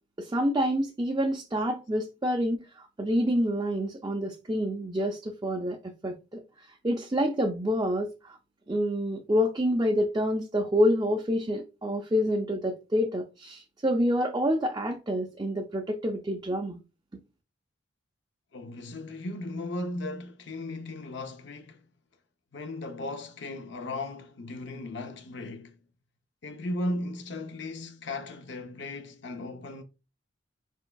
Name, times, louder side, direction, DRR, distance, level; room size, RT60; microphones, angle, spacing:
voice 1, 0.2-5.8 6.0-6.4 6.8-8.4 8.7-16.8, equal, 20° right, 0.4 m, -27 dB
voice 2, 18.5-21.9 22.5-25.8 26.4-29.8, left 2 dB, 55° left, 0.6 m, -36 dB
4.5 x 4.3 x 2.2 m
head